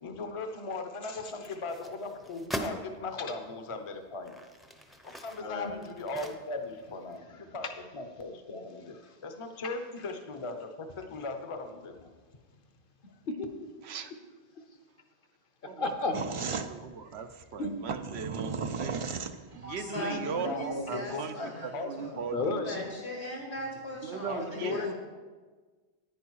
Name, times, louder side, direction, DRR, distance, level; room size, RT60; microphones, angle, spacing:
voice 1, 0.0-4.3 5.0-7.7 7.9-8.9 9.2-12.1 18.8-18.9 19.9-22.2 24.3-24.8, left 3 dB, 30° left, 6 dB, 0.7 m, -38 dB
sound 1, 1.3-2.8 3.5-3.6 4.1-6.8 7.1-7.2, equal, ahead, 0.6 m, -41 dB
voice 2, 5.4-5.7 13.4-13.7 15.6-16.2 16.5-16.6 17.6-17.7 22.3-22.9 24.5-24.9, left 3 dB, 55° left, 6 dB, 1.2 m, -33 dB
sound 2, 16.1-19.8, right 5 dB, 45° right, 0.4 m, -35 dB
voice 3, 16.4-19.0 19.5-22.6 24.0-24.9, right 5 dB, 75° right, 9 dB, 1.0 m, -38 dB
voice 4, 19.5-24.9, equal, 80° left, -2 dB, 3.0 m, -40 dB
10.0 x 9.4 x 4.7 m, 1.4 s
omnidirectional pair, 1.1 m